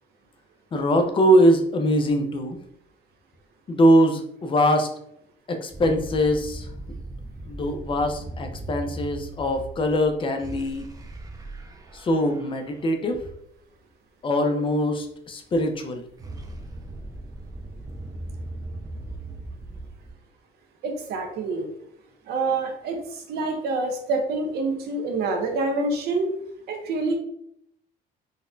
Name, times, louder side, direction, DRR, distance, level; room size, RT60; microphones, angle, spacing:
voice 1, 0.7-2.6 3.7-4.9 5.5-6.7 7.5-10.9 11.9-13.2 14.2-16.0, equal, 30° left, 5 dB, 0.5 m, -22 dB
sound 1, 5.7-12.9 15.7-20.1, right 2 dB, 20° right, 0.5 m, -38 dB
voice 2, 20.8-21.7 22.2-26.3 26.7-27.2, right 3 dB, 75° right, 3 dB, 0.7 m, -26 dB
3.9 x 2.1 x 2.5 m, 0.74 s
cardioid pair, 110°, 17 cm